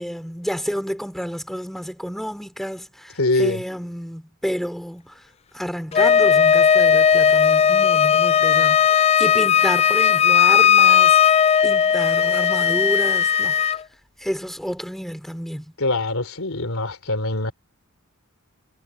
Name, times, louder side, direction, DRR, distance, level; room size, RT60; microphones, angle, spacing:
voice 1, 0.0-5.1 5.5-11.3 11.6-13.5 14.2-15.7, equal, ahead, 3.7 m, -30 dB
voice 2, 3.2-3.6 15.8-17.5, left 2 dB, 65° left, 3.9 m, -23 dB
Wind instrument woodwind instrument, 5.9-13.8, left 8 dB, 30° left, 0.3 m, -16 dB
head